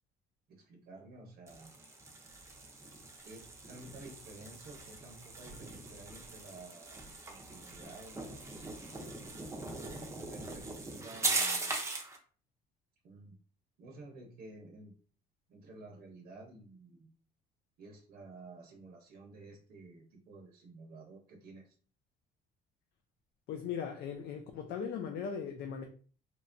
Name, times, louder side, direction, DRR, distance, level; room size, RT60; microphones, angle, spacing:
voice 1, 0.5-1.7 3.2-8.5 10.3-11.8 13.0-13.3 13.8-14.9 15.5-17.1 17.8-21.8, right 2 dB, 65° right, 0.7 m, -52 dB
sound 1, 1.5-12.2, right 3 dB, 15° right, 0.6 m, -40 dB
voice 2, 23.5-25.8, left 7 dB, 70° left, 0.4 m, -38 dB
3.0 x 2.1 x 2.5 m
cardioid pair, 110°, 17 cm